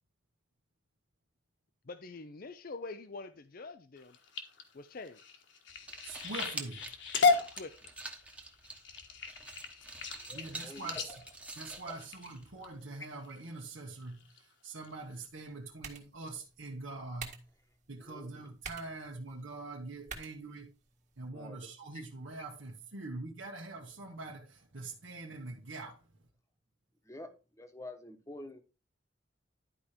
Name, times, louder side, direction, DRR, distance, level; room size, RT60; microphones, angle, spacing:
voice 1, 1.9-4.2 4.7-5.2 7.6-7.9, left 3 dB, 45° left, 0.6 m, -45 dB
sound 1, 4.0-12.7 13.2-13.6 14.0-14.4 14.8-14.9 15.2-15.3, left 4 dB, 65° left, 1.6 m, -34 dB
sound 2, 5.7-12.7, right 2 dB, 5° right, 1.1 m, -47 dB
voice 2, 6.0-6.8 10.3-11.1 11.6-17.4 17.9-20.7 21.2-26.0, right 3 dB, 80° right, 1.3 m, -44 dB
voice 3, 10.2-11.2 11.7-12.0 18.0-18.3 21.3-21.6 21.9-22.0 27.0-28.6, left 1 dB, 15° left, 1.2 m, -48 dB
sound 3, 15.3-21.3, right 5 dB, 40° right, 1.7 m, -51 dB
11.5 x 5.0 x 4.3 m
head